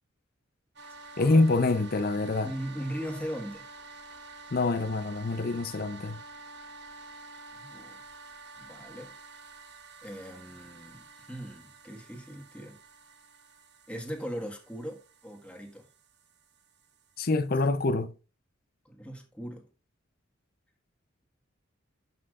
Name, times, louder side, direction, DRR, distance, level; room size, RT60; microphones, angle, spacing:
sound 1, 0.8-17.5, right 3 dB, 60° right, 1.3 m, -49 dB
voice 1, 1.2-2.5 4.5-6.2 17.2-18.1, left 2 dB, 50° left, 0.6 m, -26 dB
voice 2, 2.4-3.6 7.5-8.0 8.6-9.1 10.0-12.8 13.9-15.9 18.8-19.7, equal, 5° left, 1.5 m, -39 dB
12.5 x 5.7 x 2.4 m
head